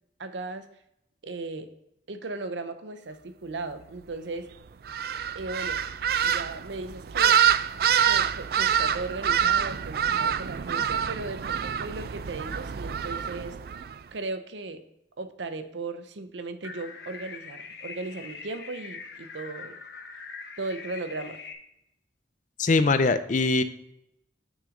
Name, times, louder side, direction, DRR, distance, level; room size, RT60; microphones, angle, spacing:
voice 1, 0.2-0.7 1.2-1.7 2.1-4.5 5.3-5.8 6.2-7.4 8.0-13.6 14.1-14.8 15.2-19.8 20.6-21.4, right 3 dB, 80° right, 10 dB, 0.7 m, -36 dB
sound 1, 4.9-13.9, right 8 dB, 55° right, 0.3 m, -26 dB
sound 2, 16.6-21.5, left 5 dB, 60° left, 0.9 m, -42 dB
voice 2, 22.6-23.6, left 3 dB, 40° left, 11 dB, 0.5 m, -22 dB
6.6 x 6.1 x 5.0 m, 0.82 s
head